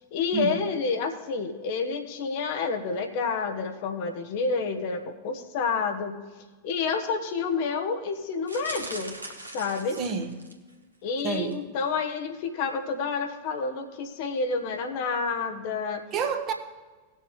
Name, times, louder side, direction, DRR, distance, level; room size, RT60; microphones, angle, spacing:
voice 1, 0.1-6.2 6.6-9.1 9.5-10.0 11.0-16.0, left 4 dB, 50° left, 6 dB, 1.1 m, -29 dB
sound 1, 8.5-10.7 11.3-11.5 11.8-11.9, right 2 dB, 85° right, 1.5 m, -40 dB
voice 2, 10.0-10.4 11.2-11.6 16.1-16.5, right 6 dB, 30° right, 4 dB, 1.2 m, -28 dB
19.0 x 6.7 x 3.2 m, 1.3 s
figure-of-eight pair, 90°, 0 cm